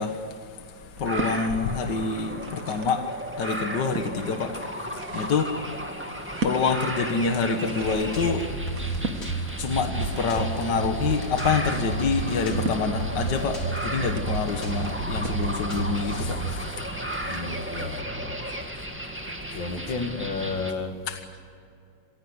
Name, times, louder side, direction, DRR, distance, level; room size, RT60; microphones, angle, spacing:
voice 1, 0.0-18.0 18.5-18.9 21.1-21.2, left 5 dB, 65° left, 2.0 m, -28 dB
sound 1, 0.9-1.4 2.1-3.0 3.5-4.1 4.7-15.5, right 3 dB, 50° right, 1.9 m, -38 dB
sound 2, 1.0-20.7, right 1 dB, 5° right, 1.8 m, -35 dB
sound 3, 7.8-16.5, right 3 dB, 45° left, 3.9 m, -31 dB
voice 2, 17.2-18.4 19.5-21.0 21.3-21.4, left 3 dB, 85° left, 2.7 m, -32 dB
27.0 x 17.0 x 8.0 m
omnidirectional pair, 2.0 m